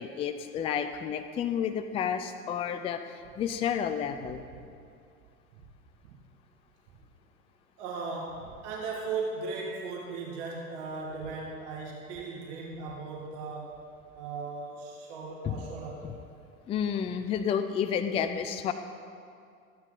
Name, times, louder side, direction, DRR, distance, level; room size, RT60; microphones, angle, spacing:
voice 1, 0.0-4.4 15.4-15.6 16.0-16.2 16.7-18.7, left 8 dB, 15° left, 9 dB, 0.3 m, -31 dB
voice 2, 7.8-13.8 14.1-16.1, right 4 dB, 55° right, -2 dB, 2.0 m, -37 dB
14.5 x 9.1 x 3.9 m, 2.3 s
hypercardioid pair, 95°, 43 cm